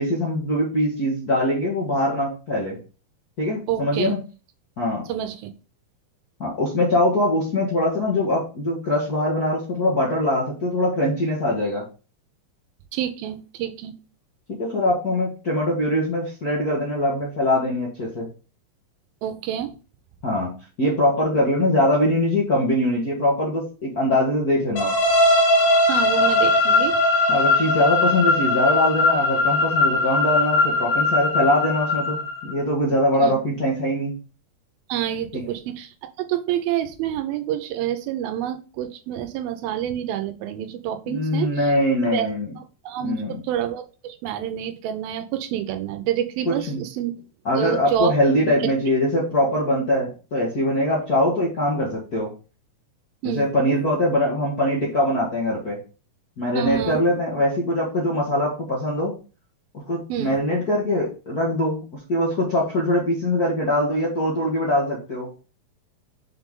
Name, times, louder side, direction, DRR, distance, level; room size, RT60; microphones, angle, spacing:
voice 1, 0.0-2.8 3.4-4.2 4.8-5.1 6.4-11.8 14.6-18.3 20.2-20.5 20.8-24.9 27.3-34.2 35.3-35.5 41.1-42.5 43.0-43.4 46.4-46.8 47.4-52.3 53.2-55.8 56.4-59.1 59.7-61.8 62.1-65.3, left 1 dB, 45° left, -5 dB, 1.2 m, -22 dB
voice 2, 3.7-4.1 5.1-5.5 12.9-13.9 19.2-19.7 25.9-27.0 33.2-33.4 34.9-41.7 42.1-42.3 42.6-47.2 47.6-48.1 48.6-48.7 53.2-53.5 56.6-57.0 60.1-60.4, right 11 dB, 80° right, 9 dB, 2.5 m, -28 dB
sound 1, 24.8-32.6, left 2 dB, 80° left, 3.1 m, -20 dB
6.3 x 4.4 x 3.7 m, 0.34 s
omnidirectional pair, 4.3 m